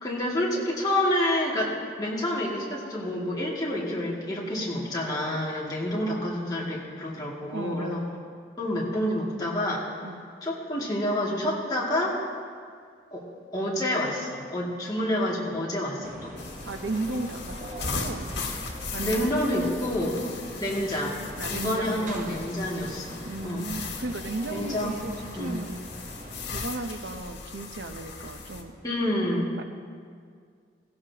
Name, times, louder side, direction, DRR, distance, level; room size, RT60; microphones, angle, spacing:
voice 1, 0.0-8.0 8.6-9.9 10.4-12.2 13.1-13.2 13.5-16.4 19.0-20.2 20.6-21.2 21.5-23.7 24.5-25.0 25.3-25.6 28.8-29.6, left 1 dB, 20° left, -5 dB, 2.3 m, -28 dB
voice 2, 7.5-8.1 10.0-10.2 16.7-18.3 18.9-19.7 20.0-20.4 21.4-22.4 23.2-25.9 26.5-28.8 29.6-29.7, right 2 dB, 80° right, 7 dB, 0.8 m, -35 dB
sound 1, 16.0-26.6, right 1 dB, 45° right, 1.0 m, -43 dB
sound 2, 16.4-28.6, left 4 dB, 85° left, 1.6 m, -38 dB
16.5 x 16.5 x 2.9 m, 2.1 s
head